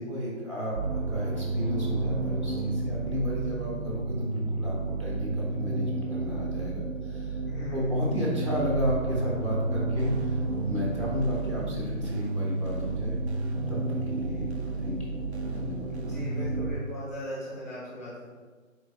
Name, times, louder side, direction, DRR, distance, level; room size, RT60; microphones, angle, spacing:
voice 1, 0.0-7.4 7.7-13.2 13.7-15.2 15.5-15.9, equal, 20° right, -5 dB, 0.8 m, -33 dB
sound 1, 0.8-16.8, right 3 dB, 85° right, 0.9 m, -31 dB
voice 2, 7.5-7.9 16.0-18.3, left 1 dB, 10° left, -7 dB, 0.7 m, -38 dB
sound 2, 10.0-16.6, right 1 dB, 55° right, 0.6 m, -41 dB
4.1 x 3.3 x 3.4 m, 1.4 s
figure-of-eight pair, 145°, 41 cm